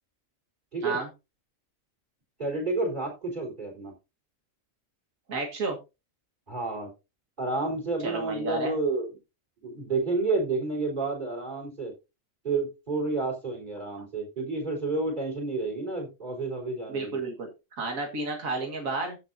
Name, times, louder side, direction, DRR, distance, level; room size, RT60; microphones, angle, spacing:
voice 1, 2.4-3.9 6.5-6.9 7.4-9.1 9.6-11.9 12.4-17.2, right 3 dB, 35° right, 1 dB, 4.1 m, -30 dB
voice 2, 5.3-5.8 8.0-8.7 16.9-19.2, right 3 dB, 85° right, 2 dB, 2.2 m, -31 dB
15.5 x 6.5 x 2.7 m, 0.26 s
omnidirectional pair, 1.4 m